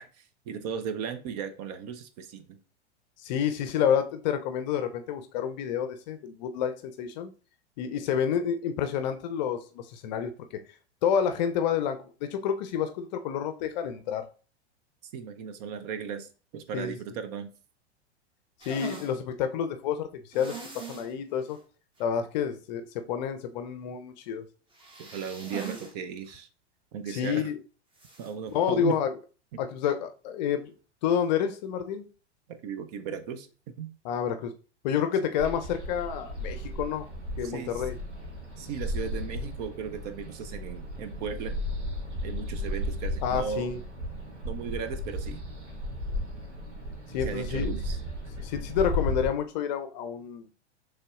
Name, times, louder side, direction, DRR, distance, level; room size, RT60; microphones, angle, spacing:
voice 1, 0.0-2.6 15.1-17.5 25.0-26.5 26.9-27.5 28.2-29.0 29.5-29.6 32.5-33.5 33.8-33.9 37.4-37.9 38.6-41.5 42.2-43.7 44.4-45.4 47.2-48.0, right 7 dB, 35° right, 0.6 m, -36 dB
voice 2, 3.2-7.3 7.8-10.3 11.0-14.2 16.7-17.0 18.7-21.6 22.0-24.5 27.1-27.6 28.5-29.1 29.6-30.7 31.0-32.1 34.0-34.5 34.8-37.1 37.4-37.9 43.2-43.8 47.1-47.8 48.4-50.5, left 8 dB, 40° left, 0.6 m, -29 dB
sound 1, 18.6-19.1 20.3-21.1 21.5-21.6 22.0-22.1 24.7-25.9 26.2-26.3 28.0-28.3, right 4 dB, 15° right, 1.0 m, -41 dB
sound 2, 35.4-49.3, left 1 dB, 80° right, 1.3 m, -35 dB
6.6 x 3.4 x 2.4 m
figure-of-eight pair, 95°, 34 cm